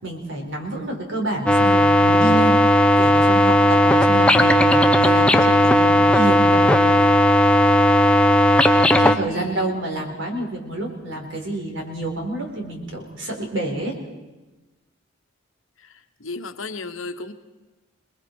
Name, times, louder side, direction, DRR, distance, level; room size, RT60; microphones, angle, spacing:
voice 1, 0.0-7.1 9.0-14.0, right 2 dB, 60° right, 2 dB, 4.1 m, -28 dB
sound 1, 1.5-9.2, left 1 dB, 5° left, 0.7 m, -15 dB
voice 2, 9.3-9.7 16.2-17.3, left 3 dB, 75° left, 9 dB, 1.2 m, -33 dB
28.0 x 20.0 x 4.6 m, 1.2 s
head